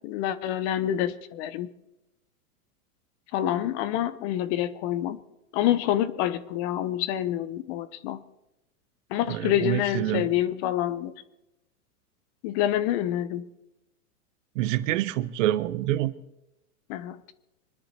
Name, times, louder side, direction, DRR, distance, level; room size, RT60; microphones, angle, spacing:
voice 1, 0.0-1.7 3.3-5.2 5.5-8.2 9.1-11.1 12.4-13.5 16.9-17.2, left 11 dB, 45° left, 1.1 m, -27 dB
voice 2, 9.3-10.3 14.5-16.1, right 14 dB, 55° right, 1.1 m, -27 dB
25.5 x 10.5 x 4.4 m
hypercardioid pair, 110°, 46 cm